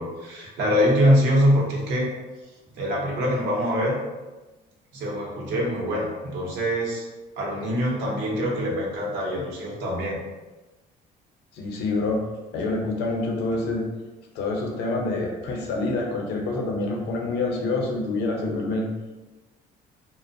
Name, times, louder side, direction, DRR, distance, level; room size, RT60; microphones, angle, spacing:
voice 1, 0.0-2.1 2.7-4.0 4.9-7.0 7.4-10.2, equal, 85° right, -2 dB, 0.7 m, -24 dB
voice 2, 11.5-12.2 12.5-13.8 14.3-18.9, left 2 dB, 80° left, 0 dB, 0.6 m, -27 dB
2.5 x 2.0 x 2.5 m, 1.2 s
cardioid pair, 110°, 17 cm